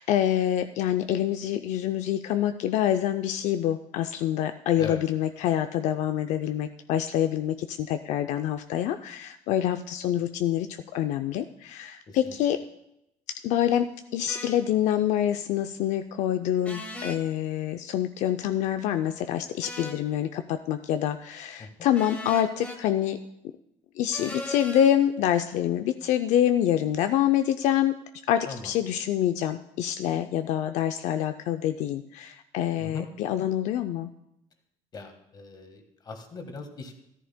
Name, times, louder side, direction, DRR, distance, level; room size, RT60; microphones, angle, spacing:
voice 1, 0.0-12.6 13.4-23.2 24.0-28.0 28.3-34.1, left 11 dB, 70° left, 8 dB, 0.5 m, -26 dB
sound 1, 14.3-14.5 16.6-17.2 19.6-20.0 21.9-22.8 24.1-24.9, left 1 dB, 10° left, 1.6 m, -38 dB
voice 2, 34.9-36.9, left 4 dB, 35° left, 5 dB, 1.5 m, -40 dB
14.0 x 13.5 x 2.2 m, 0.81 s
cardioid pair, 140°, 12 cm